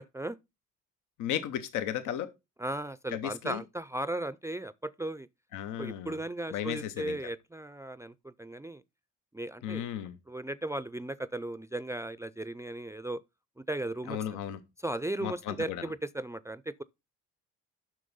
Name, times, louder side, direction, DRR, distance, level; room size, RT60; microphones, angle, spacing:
voice 1, 1.2-2.3 3.1-3.6 5.5-6.2 6.5-7.2 9.6-10.2 14.1-14.6 15.2-15.9, left 10 dB, 90° left, 0.9 m, -35 dB
voice 2, 2.6-5.3 5.8-8.8 9.3-9.9 10.3-13.2 13.6-14.2 14.8-16.8, right 1 dB, 10° right, 0.4 m, -36 dB
7.6 x 6.0 x 5.4 m
cardioid pair, 90°, 30 cm